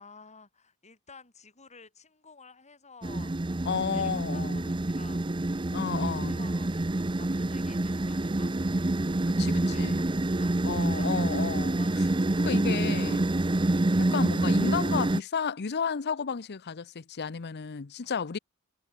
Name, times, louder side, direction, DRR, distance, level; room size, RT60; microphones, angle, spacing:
voice 1, 0.0-3.3 3.9-5.2 5.8-8.5 9.5-11.1 11.7-12.5 12.9-13.2 18.0-18.1, left 4 dB, 30° left, 5.9 m, -53 dB
sound 1, 3.0-15.2, right 2 dB, 20° right, 0.7 m, -27 dB
voice 2, 3.7-4.7 5.7-6.4 9.3-10.0 10.6-11.8 12.4-13.2 14.0-18.4, left 6 dB, 50° left, 0.7 m, -32 dB
head